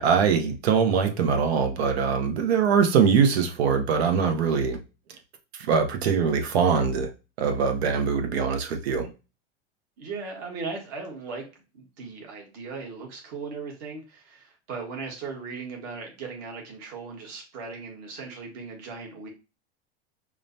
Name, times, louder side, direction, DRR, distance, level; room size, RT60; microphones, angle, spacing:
voice 1, 0.0-4.8 5.7-7.1 7.4-9.1, right 6 dB, 80° right, 0.9 m, -22 dB
voice 2, 10.0-11.5 11.7-19.3, right 4 dB, 55° right, 1.5 m, -37 dB
4.9 x 2.2 x 2.7 m
hypercardioid pair, 105°, 31 cm